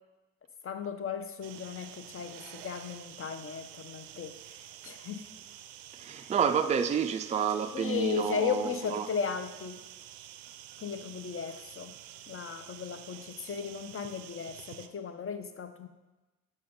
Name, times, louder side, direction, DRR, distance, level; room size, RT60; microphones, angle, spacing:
voice 1, 0.6-4.3 4.8-5.2 7.7-9.8 10.8-11.9 12.3-15.9, left 6 dB, 30° left, 0.7 m, -35 dB
sound 1, 1.4-14.9, right 12 dB, 80° right, 0.5 m, -49 dB
voice 2, 5.9-9.1, right 7 dB, 20° right, 0.4 m, -29 dB
6.5 x 5.1 x 4.3 m
supercardioid pair, 55°, 41 cm